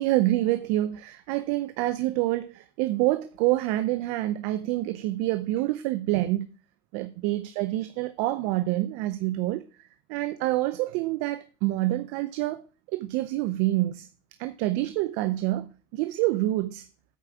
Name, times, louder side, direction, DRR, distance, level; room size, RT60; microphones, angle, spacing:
voice 1, 0.0-6.5 6.9-12.6 12.9-14.1 14.4-16.9, right 16 dB, 70° right, 0.7 m, -27 dB
8.5 x 4.8 x 7.1 m
supercardioid pair, 120°, 13 cm